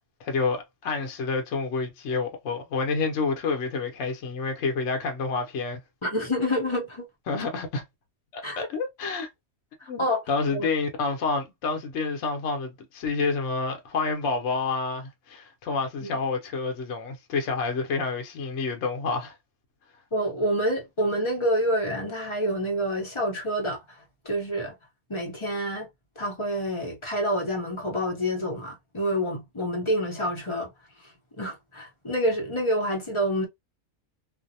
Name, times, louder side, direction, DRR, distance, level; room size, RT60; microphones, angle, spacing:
voice 1, 0.2-5.8 7.3-7.8 8.3-9.3 9.9-10.0 10.3-19.4, left 4 dB, 65° left, 0.9 m, -28 dB
voice 2, 6.0-7.1 8.4-8.6 9.8-10.2 10.5-10.7 16.0-16.2 20.1-23.8 24.2-24.8 25.1-25.9 26.2-30.7 31.4-33.5, equal, 30° left, 0.6 m, -27 dB
2.6 x 2.0 x 2.6 m
omnidirectional pair, 1.5 m